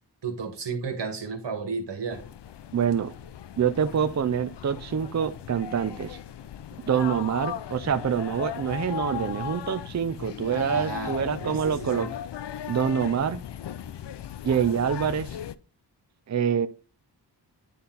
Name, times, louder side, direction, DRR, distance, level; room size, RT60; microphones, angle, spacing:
voice 1, 0.2-2.2 10.7-12.1, right 5 dB, 80° right, 1.9 m, -33 dB
sound 1, 2.1-15.5, left 10 dB, 80° left, 0.6 m, -37 dB
voice 2, 2.7-3.1 3.6-6.2 6.8-12.1 12.7-13.4 14.4-15.4 16.3-16.7, right 7 dB, 40° right, 0.5 m, -26 dB
10.0 x 4.1 x 3.9 m
wide cardioid pair, 105°, 42 cm